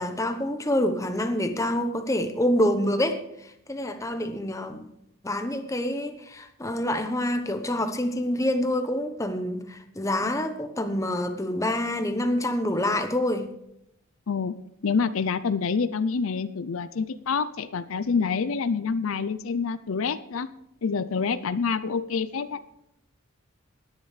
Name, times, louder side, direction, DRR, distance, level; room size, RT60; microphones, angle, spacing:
voice 1, 0.0-4.9 5.2-13.5, left 1 dB, 15° left, 8 dB, 0.9 m, -27 dB
voice 2, 14.8-20.5 20.8-22.6, left 5 dB, 70° left, 14 dB, 0.5 m, -27 dB
19.0 x 10.5 x 3.3 m, 0.80 s
head